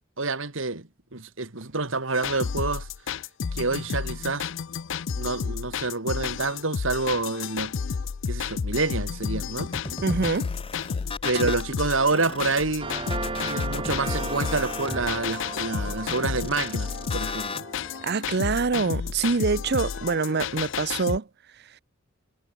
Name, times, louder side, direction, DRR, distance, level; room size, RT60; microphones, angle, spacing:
voice 1, 0.2-2.9 3.5-4.5 5.2-7.7 8.3-9.7 11.2-12.9 13.5-17.7, right 3 dB, 70° right, 2.3 m, -28 dB
sound 1, 2.1-21.2, left 6 dB, 65° left, 0.5 m, -32 dB
sound 2, 9.6-11.7 12.1-17.6, left 3 dB, 25° left, 2.5 m, -37 dB
voice 2, 10.0-10.5 11.3-11.5 18.0-21.3, right 4 dB, 50° right, 0.7 m, -25 dB
sound 3, 12.8-18.2, right 3 dB, 25° right, 1.2 m, -36 dB
head